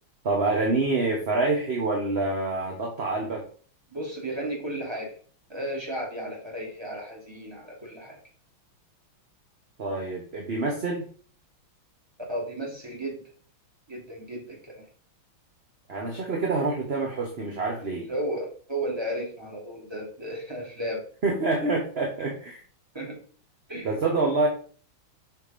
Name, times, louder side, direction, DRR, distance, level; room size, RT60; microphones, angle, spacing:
voice 1, 0.2-3.4 9.8-11.1 15.9-18.1 21.2-22.6 23.8-24.5, right 3 dB, 35° right, 0 dB, 1.2 m, -26 dB
voice 2, 3.9-5.2 5.5-8.2 12.3-13.2 13.9-14.8 18.1-21.0 22.9-23.2 23.7-23.9, right 1 dB, 10° right, -2 dB, 2.8 m, -34 dB
5.9 x 5.9 x 5.2 m, 0.43 s
omnidirectional pair, 2.4 m